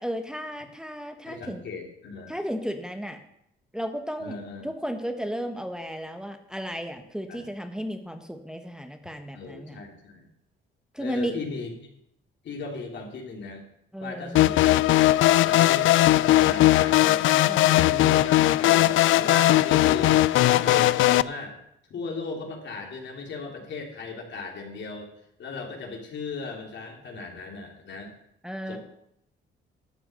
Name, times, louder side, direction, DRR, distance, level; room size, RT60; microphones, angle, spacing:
voice 1, 0.0-1.6 2.3-3.2 3.7-4.3 4.6-9.8 10.9-11.3 13.9-14.4 17.4-17.9 28.4-28.8, equal, 5° right, 5 dB, 1.2 m, -34 dB
voice 2, 1.2-2.4 4.2-4.7 7.3-7.5 9.3-10.3 11.0-11.9 12.4-13.6 14.0-17.3 17.7-21.5 21.9-25.1 25.4-28.1 28.7-28.8, left 4 dB, 65° left, 1 dB, 3.1 m, -36 dB
sound 1, 14.3-21.2, left 15 dB, 80° left, 0.4 m, -19 dB
12.5 x 5.9 x 8.7 m, 0.75 s
cardioid pair, 90°, 20 cm